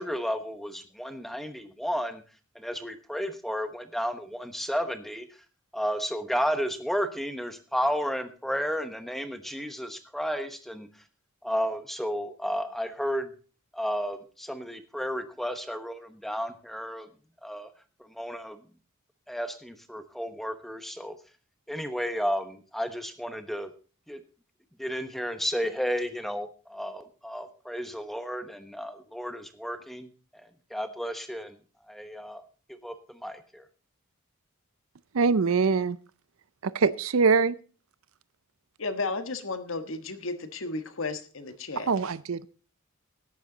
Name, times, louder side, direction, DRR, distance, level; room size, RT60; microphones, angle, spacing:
voice 1, 0.0-2.2 2.5-5.3 5.7-10.9 11.4-13.3 13.7-17.1 17.4-17.7 18.0-18.6 19.3-21.2 21.7-23.7 24.1-24.2 24.8-30.1 30.7-31.6 31.9-32.4 32.7-33.6, equal, ahead, 9 dB, 1.0 m, -32 dB
voice 2, 35.1-36.0 36.6-37.5 41.9-42.5, right 5 dB, 70° right, 17 dB, 0.5 m, -23 dB
voice 3, 38.8-41.9, left 3 dB, 65° left, 9 dB, 1.4 m, -33 dB
14.0 x 10.5 x 3.9 m, 0.37 s
head